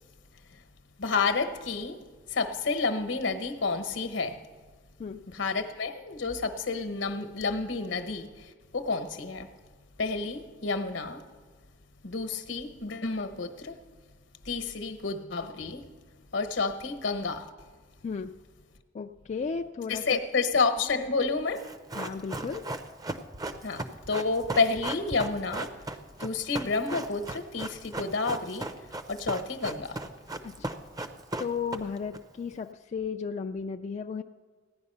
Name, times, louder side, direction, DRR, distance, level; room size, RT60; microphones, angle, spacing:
voice 1, 1.0-2.0 2.3-4.4 5.3-8.3 8.7-9.5 10.0-11.2 12.0-13.8 14.5-15.8 16.3-17.5 19.9-21.7 23.6-25.7 26.2-28.7 29.1-30.0, left 4 dB, 75° left, 1.0 m, -30 dB
voice 2, 18.0-18.4 18.9-20.2 20.8-20.9 21.9-22.7 30.4-30.7 31.4-34.2, left 5 dB, 35° left, 0.3 m, -34 dB
Run, 21.5-32.2 32.4-32.5, right 2 dB, 20° right, 0.6 m, -37 dB
16.0 x 10.0 x 5.5 m
head